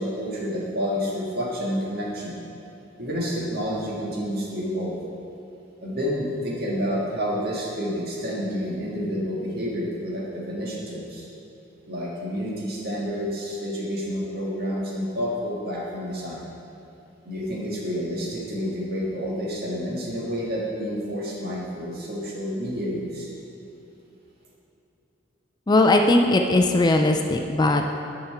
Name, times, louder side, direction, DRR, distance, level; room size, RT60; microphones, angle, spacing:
voice 1, 0.0-2.3 3.0-5.0 5.8-11.2 11.9-16.4 17.2-23.3, equal, 55° right, -4 dB, 1.7 m, -29 dB
voice 2, 25.7-27.9, left 2 dB, 20° left, 5 dB, 0.4 m, -19 dB
10.0 x 5.9 x 4.4 m, 2.8 s
head